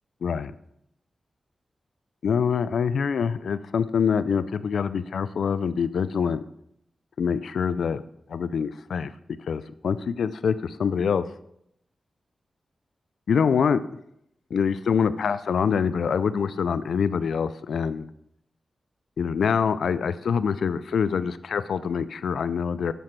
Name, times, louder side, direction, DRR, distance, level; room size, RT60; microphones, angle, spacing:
voice 1, 0.2-0.5 2.2-6.4 7.2-8.0 8.3-9.1 9.5-11.2 13.3-13.8 14.5-18.1 19.2-22.9, left 6 dB, 90° left, 14 dB, 0.4 m, -25 dB
7.5 x 6.9 x 5.9 m, 0.75 s
wide cardioid pair, 125°, 0 cm